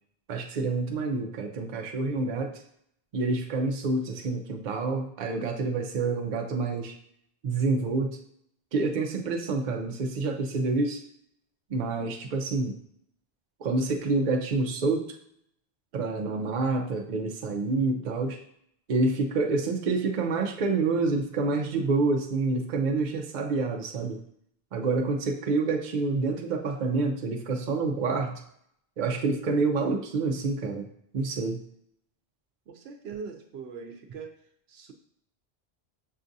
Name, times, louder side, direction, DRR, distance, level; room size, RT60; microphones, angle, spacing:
voice 1, 0.3-2.6 3.1-7.0 7.4-8.2 8.7-11.0 11.7-12.8 13.6-15.2 15.9-18.4 18.9-24.2 24.7-28.4 29.0-30.9 31.1-31.6, right 3 dB, 55° right, 2 dB, 0.7 m, -27 dB
voice 2, 32.7-34.3 34.7-34.9, right 5 dB, 80° right, 4 dB, 0.9 m, -41 dB
6.4 x 2.4 x 2.6 m, 0.70 s
omnidirectional pair, 1.1 m